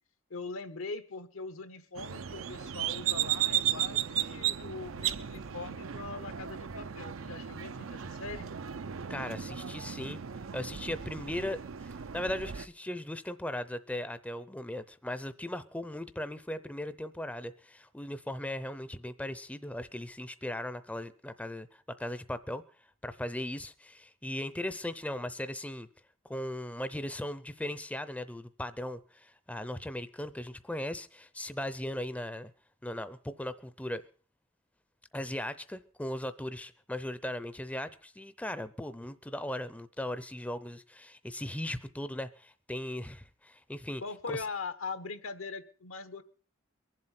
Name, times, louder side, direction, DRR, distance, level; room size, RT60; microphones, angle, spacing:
voice 1, 0.3-8.5 44.0-46.2, left 4 dB, 80° left, 11 dB, 1.1 m, -41 dB
sound 1, 2.0-12.7, right 10 dB, 75° right, 0.6 m, -35 dB
voice 2, 9.1-10.2 10.5-22.6 23.0-25.9 26.2-32.5 32.8-34.0 35.1-44.0 44.3-44.5, left 1 dB, 5° left, 13 dB, 0.6 m, -38 dB
23.0 x 7.7 x 5.8 m, 0.42 s
head